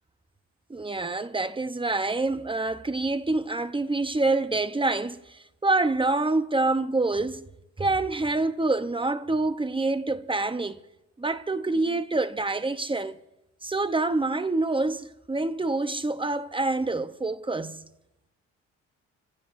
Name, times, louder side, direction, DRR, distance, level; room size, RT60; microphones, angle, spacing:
voice 1, 0.7-7.4 7.8-10.8 11.2-13.2 13.6-17.8, right 2 dB, 15° right, 0.9 m, -26 dB
26.5 x 15.5 x 2.7 m
cardioid pair, 90°, 30 cm